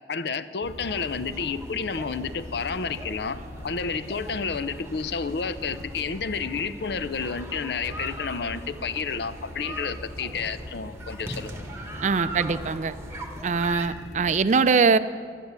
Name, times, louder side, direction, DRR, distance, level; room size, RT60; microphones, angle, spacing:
voice 1, 0.1-11.7, left 5 dB, 70° left, 13 dB, 0.6 m, -30 dB
sound 1, 0.6-14.3, left 1 dB, 40° left, 0.8 m, -41 dB
sound 2, 0.8-13.9, right 2 dB, 15° right, 1.2 m, -41 dB
voice 2, 12.0-12.9 13.4-15.0, right 5 dB, 40° right, 13 dB, 0.4 m, -22 dB
12.0 x 10.5 x 8.1 m, 2.1 s
head